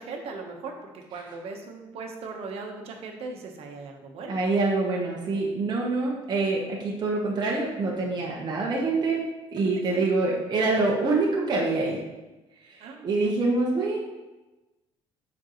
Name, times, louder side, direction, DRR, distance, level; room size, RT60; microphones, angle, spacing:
voice 1, 0.0-4.4 9.7-10.1 12.8-13.3, right 4 dB, 65° right, 2 dB, 1.1 m, -39 dB
voice 2, 4.2-9.2 9.5-12.0 12.7-14.0, right 3 dB, 40° right, -3 dB, 1.1 m, -25 dB
7.4 x 5.3 x 3.1 m, 1.1 s
cardioid pair, 120°, 11 cm